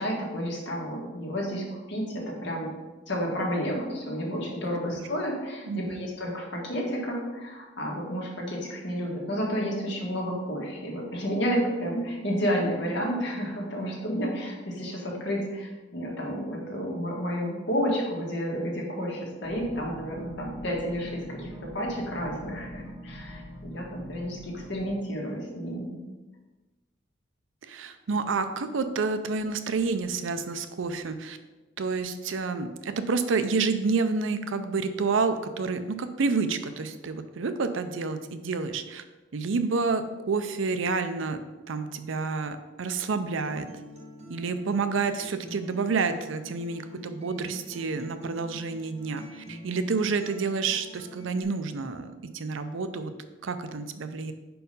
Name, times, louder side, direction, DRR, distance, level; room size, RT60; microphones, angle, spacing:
voice 1, 0.0-2.7 3.1-25.9, equal, 65° left, -2 dB, 1.7 m, -31 dB
voice 2, 5.7-6.0 27.6-31.4 31.8-39.0 39.3-41.4 41.7-43.7 44.3-53.1 53.4-54.3, right 4 dB, 85° right, 10 dB, 0.5 m, -29 dB
sound 1, 19.4-24.9, equal, 15° right, 1.0 m, -43 dB
Acoustic guitar, 43.4-51.4, equal, 35° right, 1.2 m, -46 dB
5.0 x 4.6 x 5.3 m, 1.2 s
head